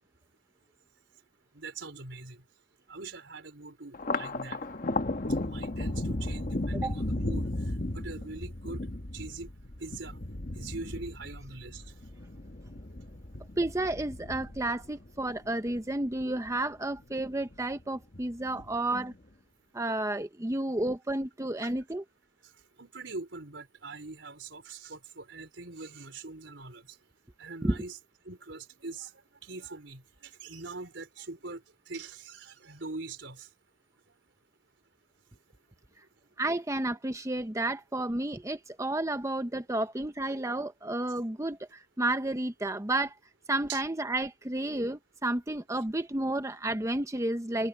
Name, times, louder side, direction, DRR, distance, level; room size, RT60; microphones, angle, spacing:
voice 1, 1.5-2.4 2.9-4.6 5.4-7.5 7.9-8.8 9.1-9.5 9.8-10.2 10.5-11.8 18.4-18.6 19.0-19.1 22.8-26.8 27.4-28.0 28.3-29.1 29.5-31.6 31.9-33.5 43.7-43.8, right 3 dB, 80° right, 4.2 m, -42 dB
Thunder, 3.9-16.6 17.0-17.8 18.1-19.0, left 2 dB, 50° left, 1.3 m, -35 dB
voice 2, 13.6-19.1 19.7-22.0 27.6-27.8 36.4-43.1 43.5-47.7, right 1 dB, 15° right, 0.8 m, -31 dB
head